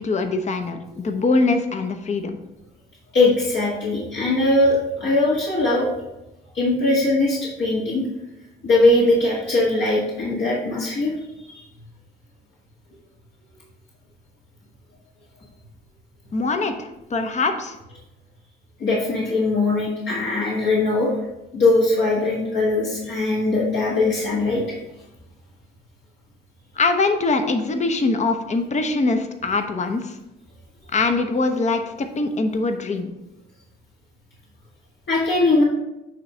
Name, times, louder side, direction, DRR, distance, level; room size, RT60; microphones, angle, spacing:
voice 1, 0.0-2.4 16.3-17.8 26.8-30.2 30.9-33.1, left 3 dB, 35° left, 6 dB, 0.8 m, -23 dB
voice 2, 3.1-5.9 6.5-8.0 8.6-11.1 11.5-11.6 18.8-21.1 21.5-24.6 35.1-35.6, left 2 dB, 60° left, -5 dB, 1.8 m, -20 dB
8.8 x 3.2 x 5.0 m, 0.93 s
cardioid pair, 90°, 20 cm